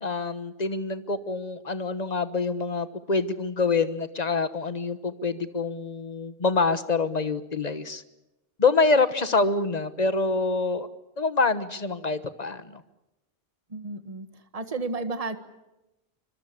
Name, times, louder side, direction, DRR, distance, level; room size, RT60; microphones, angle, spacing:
voice 1, 0.0-8.0 8.6-10.9 11.2-12.8, left 3 dB, 40° left, 12 dB, 1.3 m, -26 dB
voice 2, 13.7-15.4, right 3 dB, 35° right, 9 dB, 1.6 m, -33 dB
25.5 x 22.0 x 8.5 m, 0.96 s
omnidirectional pair, 1.1 m